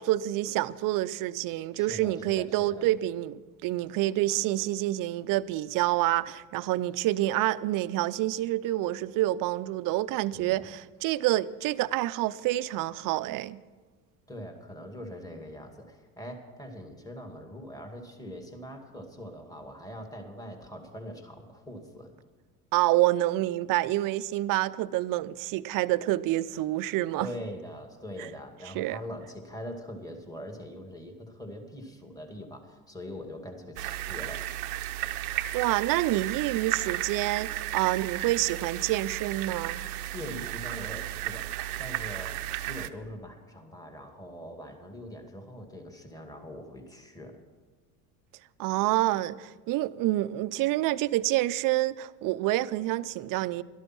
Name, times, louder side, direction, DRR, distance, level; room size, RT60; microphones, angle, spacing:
voice 1, 0.0-13.6 22.7-27.3 28.2-28.3 28.7-29.0 35.3-39.8 48.6-53.6, right 16 dB, 50° right, 0.6 m, -28 dB
voice 2, 1.7-2.9 10.3-10.6 14.3-22.1 27.2-34.5 40.1-41.5 41.8-47.4, equal, 10° left, 2.2 m, -42 dB
sound 1, 33.8-42.9, right 14 dB, 90° right, 0.8 m, -34 dB
12.5 x 12.0 x 6.0 m
hypercardioid pair, 90°, 43 cm